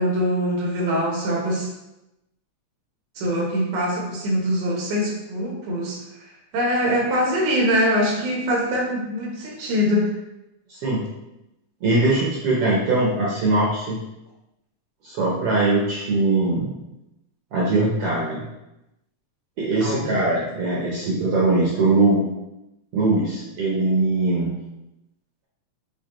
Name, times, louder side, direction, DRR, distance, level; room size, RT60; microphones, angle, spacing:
voice 1, 0.0-1.7 3.2-6.0 6.5-10.1 19.8-20.1, equal, 85° right, -2 dB, 2.5 m, -23 dB
voice 2, 10.7-11.0 11.8-14.0 15.0-16.7 17.5-18.4 19.6-22.2 22.9-24.6, right 2 dB, 65° right, -5 dB, 1.4 m, -21 dB
6.4 x 2.5 x 3.0 m, 0.92 s
omnidirectional pair, 3.4 m